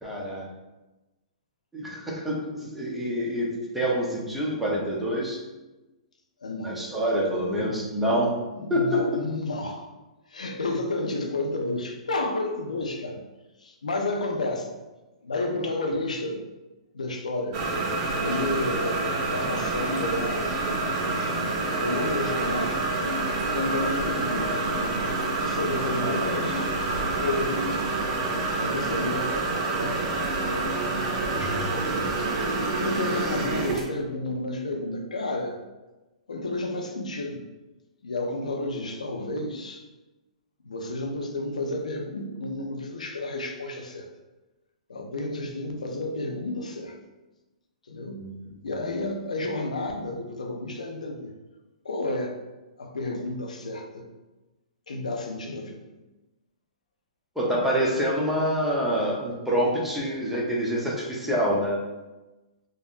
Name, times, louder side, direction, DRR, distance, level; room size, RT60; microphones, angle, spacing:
voice 1, 0.0-0.5 1.7-5.4 6.6-8.3 8.7-9.2 26.0-26.6 48.2-48.4 48.7-48.8 57.4-61.8, equal, 5° right, -5 dB, 0.7 m, -26 dB
voice 2, 6.4-6.8 7.5-7.7 8.5-9.9 10.3-13.2 13.6-14.7 15.2-16.4 16.9-17.6 18.2-20.6 21.8-22.9 23.5-25.0 25.3-26.7 27.2-27.8 28.6-30.7 31.1-32.0 32.8-35.6 36.3-37.4 38.0-39.8 40.6-44.1 44.9-47.0 47.9-48.3 48.6-51.3 51.8-52.4 52.8-54.1 54.9-55.8, left 2 dB, 85° left, 2 dB, 0.4 m, -31 dB
sound 1, 17.5-33.9, right 3 dB, 45° right, 0.6 m, -27 dB
3.5 x 2.0 x 2.4 m, 1.1 s
hypercardioid pair, 125°, 4 cm